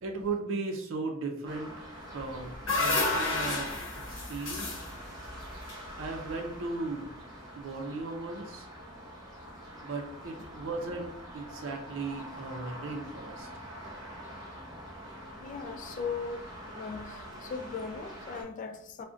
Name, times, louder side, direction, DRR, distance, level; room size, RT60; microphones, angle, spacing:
voice 1, 0.0-3.7 4.1-4.8 6.0-7.1 7.6-8.7 9.8-13.5, right 3 dB, 70° right, 0.5 m, -37 dB
sound 1, 1.4-18.4, equal, 20° right, 0.7 m, -45 dB
sound 2, 2.2-6.4, left 2 dB, 70° left, 0.8 m, -32 dB
voice 2, 15.4-19.0, left 5 dB, 40° left, 0.3 m, -38 dB
2.5 x 2.1 x 3.7 m
head